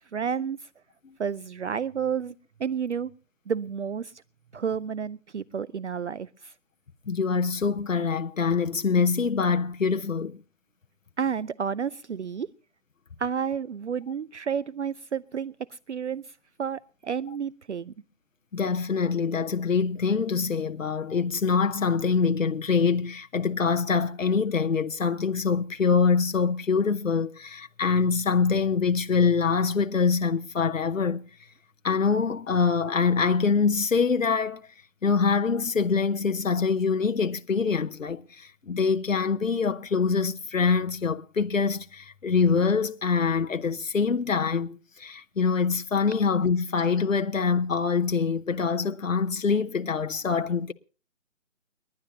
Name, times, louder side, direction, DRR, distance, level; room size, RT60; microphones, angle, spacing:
voice 1, 0.1-0.6 1.2-2.3 2.6-3.1 3.5-4.1 4.5-6.5 11.2-12.5 13.2-16.2 16.6-17.9, right 7 dB, 60° right, 0.6 m, -30 dB
voice 2, 7.1-10.4 18.5-31.2 31.8-34.6 35.0-50.7, left 5 dB, 75° left, 0.9 m, -24 dB
30.0 x 11.0 x 2.8 m
figure-of-eight pair, 150°, 39 cm